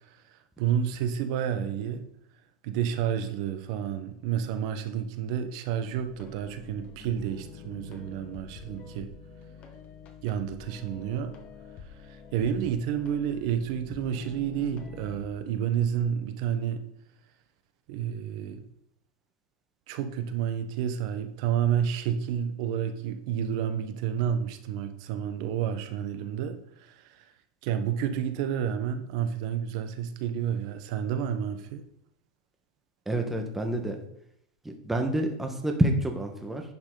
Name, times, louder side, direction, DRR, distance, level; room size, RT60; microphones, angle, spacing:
voice 1, 0.6-2.0 2.6-9.1 10.2-11.3 12.0-16.8 17.9-18.6 19.9-27.2 27.6-31.8, right 9 dB, 60° right, 1.0 m, -30 dB
sound 1, 5.9-15.3, left 6 dB, 35° left, 1.3 m, -47 dB
voice 2, 33.1-34.0 34.6-36.6, right 1 dB, 5° right, 1.3 m, -28 dB
10.5 x 5.8 x 3.9 m
supercardioid pair, 140°, 4 cm